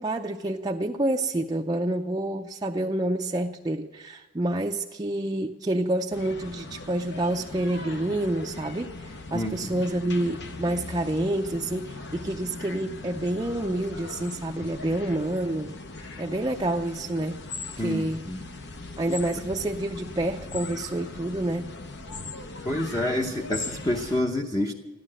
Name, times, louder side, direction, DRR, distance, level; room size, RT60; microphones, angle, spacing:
voice 1, 0.0-15.7 16.2-17.4 17.8-18.2 19.0-21.7, right 1 dB, 20° right, 2 dB, 0.5 m, -28 dB
sound 1, 6.1-24.2, left 3 dB, 60° left, 1.1 m, -39 dB
voice 2, 9.3-9.8 17.8-18.4 22.6-24.7, left 1 dB, 20° left, 1 dB, 0.8 m, -28 dB
14.5 x 12.0 x 7.6 m, 1.2 s
head